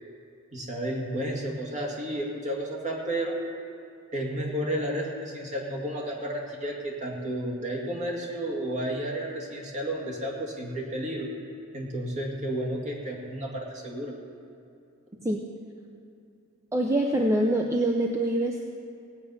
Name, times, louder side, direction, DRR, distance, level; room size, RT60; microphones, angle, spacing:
voice 1, 0.5-3.4 4.1-11.3 11.7-14.1, right 1 dB, 35° right, -1 dB, 2.2 m, -32 dB
voice 2, 16.7-18.6, right 1 dB, 15° right, 1 dB, 0.7 m, -25 dB
17.0 x 9.3 x 5.7 m, 2.6 s
head